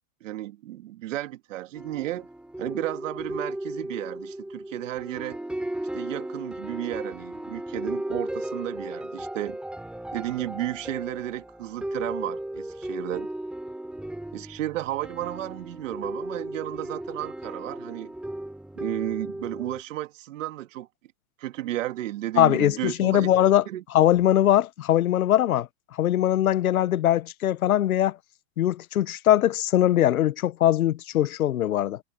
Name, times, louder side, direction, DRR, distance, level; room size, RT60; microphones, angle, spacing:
voice 1, 0.2-2.3 2.6-5.4 5.9-9.6 10.1-13.3 14.3-18.1 18.8-20.9 21.4-23.3 23.7-23.8, right 15 dB, 65° right, 2.1 m, -33 dB
sound 1, 1.7-19.8, right 1 dB, ahead, 6.2 m, -35 dB
voice 2, 22.4-23.6 23.9-28.2 28.6-32.0, left 12 dB, 80° left, 1.3 m, -21 dB
hypercardioid pair, 145°, 42 cm